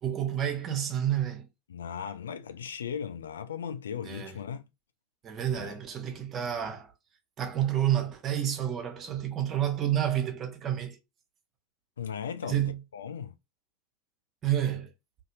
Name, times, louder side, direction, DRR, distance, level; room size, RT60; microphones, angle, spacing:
voice 1, 0.0-1.5 4.0-4.4 5.2-6.9 7.4-11.0 12.5-12.8 14.4-14.9, right 10 dB, 35° right, 0.8 m, -29 dB
voice 2, 1.7-4.6 5.5-5.7 12.0-12.6 12.9-13.3, left 7 dB, 75° left, 0.3 m, -37 dB
2.6 x 2.5 x 2.6 m
figure-of-eight pair, 85°, 0 cm